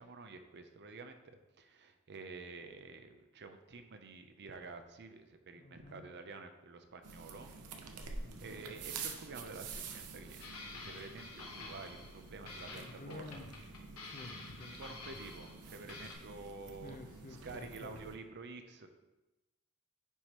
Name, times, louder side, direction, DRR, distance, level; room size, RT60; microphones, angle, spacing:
voice 1, 0.0-7.5 8.0-13.2 14.8-17.0 17.4-18.9, right 3 dB, 50° right, 7 dB, 0.7 m, -50 dB
voice 2, 5.6-6.0 8.2-8.6 12.5-13.5 14.0-15.0 16.7-18.0, left 2 dB, 40° left, 5 dB, 0.8 m, -51 dB
sound 1, 7.0-18.2, right 4 dB, 90° right, 0.8 m, -48 dB
sound 2, 10.4-12.2 12.5-15.6 15.9-16.1, left 3 dB, 75° left, 1.3 m, -49 dB
9.8 x 5.0 x 3.0 m, 1.0 s
head